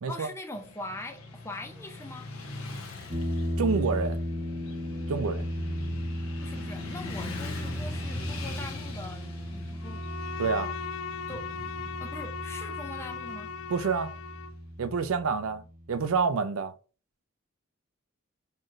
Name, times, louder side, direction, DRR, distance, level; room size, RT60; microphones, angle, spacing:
voice 1, 0.1-2.3 6.4-10.0 11.3-11.5 12.0-13.5, left 1 dB, 10° left, 0.5 m, -42 dB
Motorcycle / Traffic noise roadway noise, 0.5-14.6, left 2 dB, 85° left, 1.0 m, -42 dB
sound 1, 3.1-16.2, equal, 35° right, 1.2 m, -36 dB
voice 2, 3.6-4.2 5.1-5.5 10.4-10.7 13.7-14.1 14.8-16.7, right 5 dB, 75° right, 0.5 m, -28 dB
Bowed string instrument, 9.8-14.6, left 5 dB, 65° left, 0.3 m, -38 dB
4.4 x 3.0 x 2.5 m
head